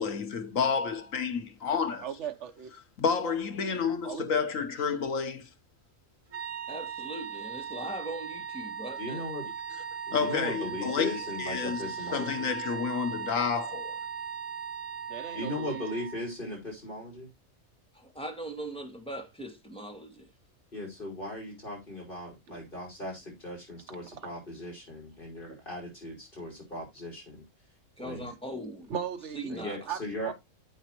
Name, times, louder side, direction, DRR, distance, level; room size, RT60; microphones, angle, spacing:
voice 1, 0.0-2.0 3.0-5.5 10.1-11.8 12.1-14.0, left 6 dB, 85° left, 1.6 m, -30 dB
voice 2, 2.0-2.7 4.0-4.3 15.1-15.8 22.5-22.6 24.0-24.3 25.4-25.6 28.9-29.5 29.9-30.3, right 8 dB, 65° right, 1.3 m, -38 dB
sound 1, 6.3-16.3, right 7 dB, 90° right, 2.2 m, -38 dB
voice 3, 6.7-9.2 17.9-20.3 28.0-28.9 29.3-29.8, right 1 dB, 5° left, 1.7 m, -40 dB
voice 4, 9.0-9.5 10.1-12.5 15.3-17.3 20.7-27.4 28.0-28.3 29.5-30.3, left 1 dB, 40° left, 5.5 m, -38 dB
9.8 x 8.1 x 3.0 m
omnidirectional pair, 1.3 m